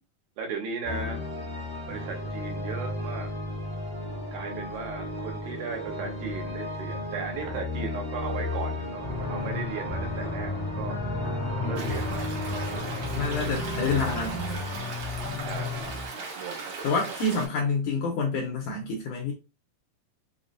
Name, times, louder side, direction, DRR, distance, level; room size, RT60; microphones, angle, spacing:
voice 1, 0.4-1.2 1.9-3.3 4.3-11.0 11.4-13.1 14.4-14.7 15.4-16.7 17.1-17.2, right 5 dB, 85° right, 1 dB, 2.7 m, -37 dB
sound 1, 0.8-14.6, left 1 dB, 45° right, 0.4 m, -34 dB
sound 2, 9.0-16.1, left 4 dB, 55° left, 0.8 m, -34 dB
voice 2, 11.6-12.0 13.1-14.4 16.8-19.3, left 3 dB, 80° left, 0 dB, 1.8 m, -28 dB
Stream, 11.8-17.5, right 4 dB, 70° right, 1.6 m, -39 dB
5.8 x 2.0 x 2.5 m, 0.28 s
omnidirectional pair, 4.2 m